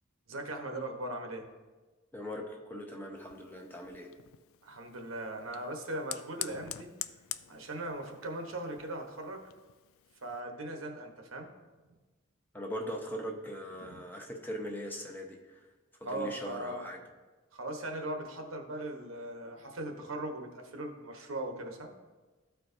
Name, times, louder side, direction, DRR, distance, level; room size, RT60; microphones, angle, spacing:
voice 1, 0.3-1.5 4.6-6.9 7.5-9.4 10.2-11.5 13.8-14.0 16.0-16.8 17.5-21.9, right 1 dB, 80° right, 3 dB, 1.0 m, -39 dB
voice 2, 2.1-4.1 12.5-15.7 16.1-17.0, equal, 10° left, 1 dB, 0.7 m, -40 dB
Fire, 3.2-10.4, left 13 dB, 80° left, 0.3 m, -46 dB
13.5 x 4.6 x 2.6 m, 1.2 s
head